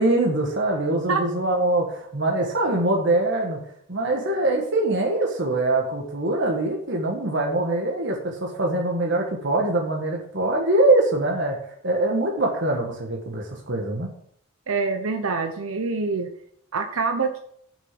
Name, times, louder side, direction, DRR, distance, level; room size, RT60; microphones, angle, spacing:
voice 1, 0.0-3.6 3.9-11.6 11.8-14.1, right 2 dB, 55° right, 0 dB, 1.7 m, -23 dB
voice 2, 14.7-16.3 16.7-17.4, right 4 dB, 85° right, 6 dB, 0.9 m, -25 dB
7.5 x 6.4 x 7.7 m, 0.67 s
head